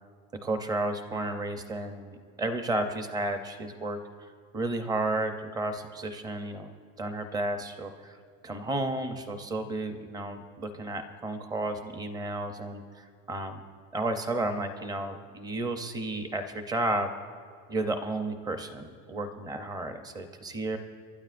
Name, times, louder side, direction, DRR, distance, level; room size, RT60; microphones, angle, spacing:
voice 1, 0.4-6.7 7.0-8.2 8.4-13.6 13.9-17.1 17.7-20.8, right 2 dB, 10° right, 8 dB, 0.5 m, -32 dB
29.0 x 12.5 x 2.5 m, 2.1 s
supercardioid pair, 155°, 43 cm